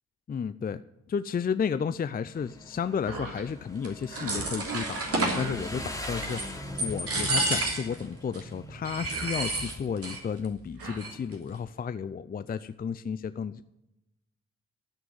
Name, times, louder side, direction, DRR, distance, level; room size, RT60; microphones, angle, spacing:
voice 1, 0.3-0.8 1.1-13.6, left 6 dB, 25° left, 13 dB, 0.6 m, -32 dB
Motorcycle, 2.3-10.5, left 1 dB, 10° left, 2.9 m, -42 dB
sound 1, 3.0-3.5 3.8-4.6 5.3-6.0 6.8-6.9 7.0-7.8 8.9-9.8 10.5-11.0, right 2 dB, 65° right, 2.7 m, -41 dB
sound 2, 3.8-5.5 6.0-6.5 6.8-8.0 8.3-8.4 8.8-10.2 10.4-10.5 10.8-11.3, right 2 dB, 40° right, 3.2 m, -30 dB
13.0 x 6.2 x 8.5 m, 0.88 s
hypercardioid pair, 45°, 35 cm